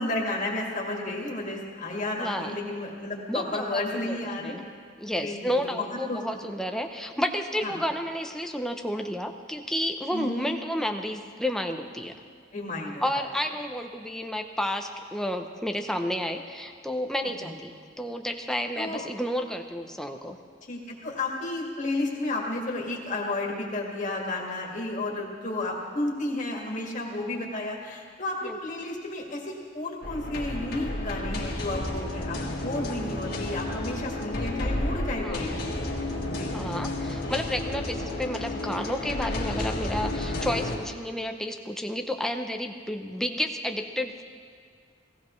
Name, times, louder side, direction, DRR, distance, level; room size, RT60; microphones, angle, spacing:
voice 1, 0.0-4.5 5.2-6.2 7.6-7.7 10.1-10.4 12.5-13.1 17.4-17.5 18.8-19.0 20.7-35.7 36.3-36.5, left 2 dB, 40° left, -1 dB, 2.0 m, -32 dB
voice 2, 2.1-2.5 3.3-4.6 5.0-12.1 13.0-20.4 28.4-28.6 35.2-35.4 36.5-44.3, left 1 dB, 5° left, 5 dB, 0.6 m, -31 dB
sound 1, 30.0-40.8, left 1 dB, 60° left, 1.8 m, -31 dB
17.5 x 15.5 x 3.2 m, 2.1 s
head